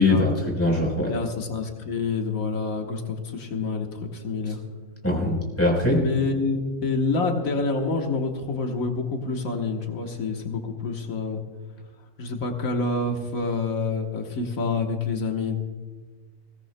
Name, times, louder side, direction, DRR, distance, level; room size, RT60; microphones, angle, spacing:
voice 1, 0.0-1.1 5.0-6.0, left 2 dB, 10° left, -3 dB, 4.1 m, -21 dB
voice 2, 1.1-4.6 5.9-11.4 12.2-15.6, left 3 dB, 90° left, 2 dB, 1.7 m, -27 dB
21.5 x 17.0 x 2.2 m, 1.5 s
omnidirectional pair, 1.4 m